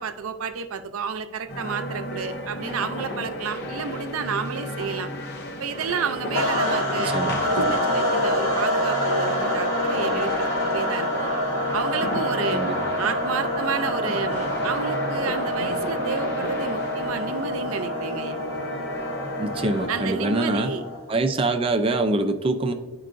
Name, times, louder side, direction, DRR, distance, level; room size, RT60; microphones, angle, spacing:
voice 1, 0.0-5.1 5.6-7.2 7.4-11.3 11.7-12.6 13.0-18.4 19.9-20.8, right 5 dB, 85° right, 9 dB, 0.5 m, -31 dB
sound 1, 1.5-19.9, equal, 50° left, 0.7 m, -34 dB
sound 2, 6.3-21.1, equal, 80° left, 1.3 m, -26 dB
voice 2, 7.0-7.4 12.5-12.8 19.4-20.7 21.1-22.7, right 2 dB, 25° right, 7 dB, 0.4 m, -24 dB
10.5 x 4.5 x 2.5 m, 1.1 s
head